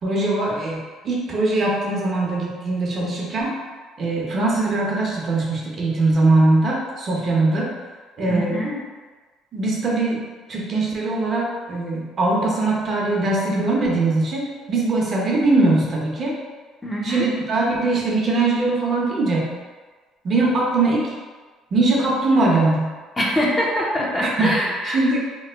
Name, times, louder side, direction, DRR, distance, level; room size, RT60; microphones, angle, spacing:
voice 1, 0.0-3.6 4.0-7.7 8.2-8.6 9.5-10.2 10.5-16.3 17.0-19.5 20.2-21.1 21.7-22.9 24.4-24.6 24.8-25.2, right 2 dB, 45° right, -3 dB, 0.7 m, -21 dB
voice 2, 8.3-8.8 16.8-17.3 23.2-25.0, equal, 15° left, -3 dB, 0.6 m, -23 dB
2.9 x 2.0 x 3.3 m, 1.4 s
cardioid pair, 105°, 0 cm